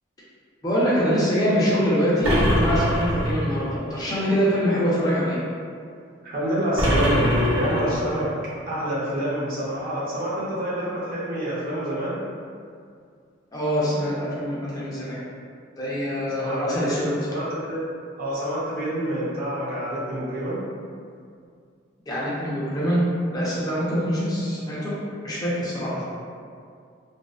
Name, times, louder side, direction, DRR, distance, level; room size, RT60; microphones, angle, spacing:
voice 1, 0.6-5.4 13.5-15.2 15.8-17.1 22.1-23.0 23.3-24.9 25.2-26.0, equal, 20° left, -8 dB, 0.4 m, -24 dB
sound 1, 2.2-3.7 6.8-8.3, equal, 80° right, 0.8 m, -23 dB
voice 2, 6.2-8.3 8.7-12.2 16.4-17.0 17.3-17.8 18.2-20.6 25.9-26.0, equal, 45° right, -7 dB, 0.6 m, -27 dB
2.5 x 2.1 x 2.3 m, 2.2 s
head